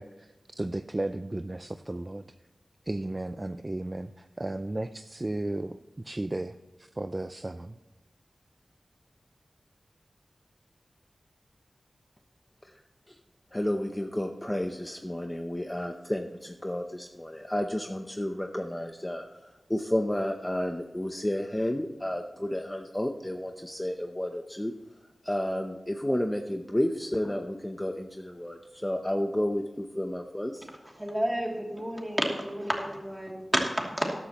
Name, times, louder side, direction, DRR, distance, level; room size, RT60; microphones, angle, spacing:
voice 1, 0.0-2.2 2.9-7.8, right 2 dB, 30° right, 10 dB, 0.4 m, -34 dB
voice 2, 13.5-24.7 25.2-30.7, left 1 dB, 15° left, 5 dB, 0.7 m, -31 dB
voice 3, 30.6-34.1, equal, 10° right, 0 dB, 2.7 m, -31 dB
14.0 x 11.5 x 3.0 m, 1.1 s
wide cardioid pair, 80°, 0 cm